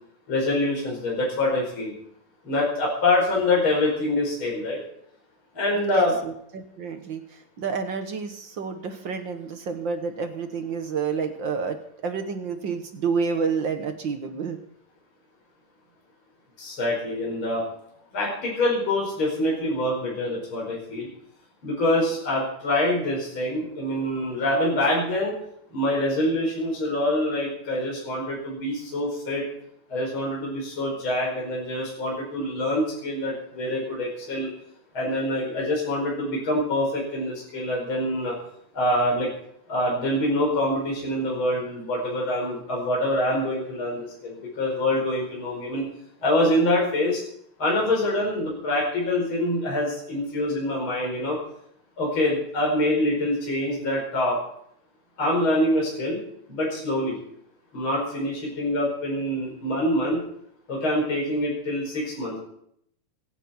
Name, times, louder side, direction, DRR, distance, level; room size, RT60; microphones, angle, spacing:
voice 1, 0.3-1.9 2.4-4.8 5.5-6.2 16.6-17.6 18.1-21.1 21.6-25.3 25.7-29.4 29.9-34.5 34.9-38.3 38.7-39.3 39.7-45.9 46.2-47.2 47.6-51.4 52.0-54.4 55.2-56.2 56.5-57.2 57.7-60.2 60.7-62.4, left 1 dB, 35° left, -3 dB, 5.8 m, -25 dB
voice 2, 5.8-7.2 7.6-11.8 12.0-14.6, right 5 dB, 55° right, 6 dB, 1.3 m, -29 dB
27.0 x 10.0 x 4.4 m, 0.70 s
omnidirectional pair, 3.8 m